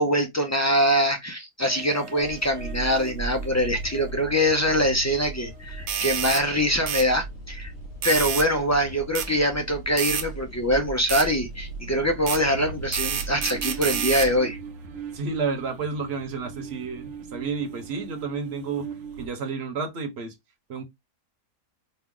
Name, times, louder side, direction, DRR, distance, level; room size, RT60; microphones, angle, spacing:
voice 1, 0.0-7.7 8.0-14.6, equal, 25° left, 0.4 m, -23 dB
sound 1, 1.6-19.3, right 4 dB, 70° right, 1.1 m, -41 dB
sound 2, 2.2-14.4, right 2 dB, 55° left, 1.0 m, -39 dB
sound 3, 5.9-6.4 6.9-7.1 8.0-8.5 9.2-9.3 10.0-10.3 11.1-11.3 12.3-12.4 12.9-14.3, right 8 dB, 85° right, 1.1 m, -28 dB
voice 2, 15.1-20.3 20.7-20.8, right 4 dB, 50° right, 1.2 m, -31 dB
4.4 x 2.3 x 3.7 m
omnidirectional pair, 1.5 m